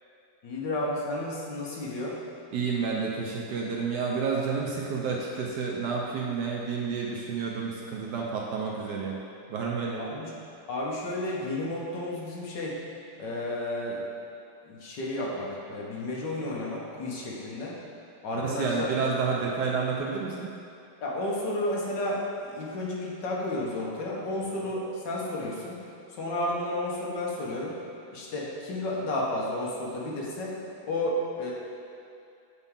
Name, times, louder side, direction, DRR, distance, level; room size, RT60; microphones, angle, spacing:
voice 1, 0.4-2.2 10.0-10.3 10.7-12.8 13.2-14.0 14.7-17.8 18.2-18.9 21.0-22.2 22.5-25.8 26.2-27.7 28.1-30.5 30.9-31.5, left 1 dB, 60° left, -4 dB, 1.4 m, -32 dB
voice 2, 2.5-9.2 9.5-10.2 18.3-20.5, right 5 dB, 75° right, -2 dB, 1.0 m, -30 dB
8.0 x 4.1 x 3.6 m, 2.6 s
omnidirectional pair, 2.4 m